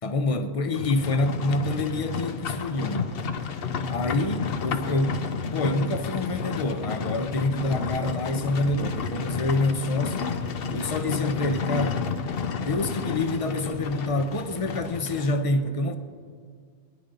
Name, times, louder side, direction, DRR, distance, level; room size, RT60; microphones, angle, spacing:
voice 1, 0.0-3.1 3.9-5.3 5.5-10.3 10.7-12.0 12.5-16.0, left 2 dB, 35° left, 0.8 m, -27 dB
Livestock farm animals working animals, 0.7-15.3, left 5 dB, 60° left, 0.9 m, -31 dB
20.5 x 10.5 x 3.9 m
omnidirectional pair, 1.1 m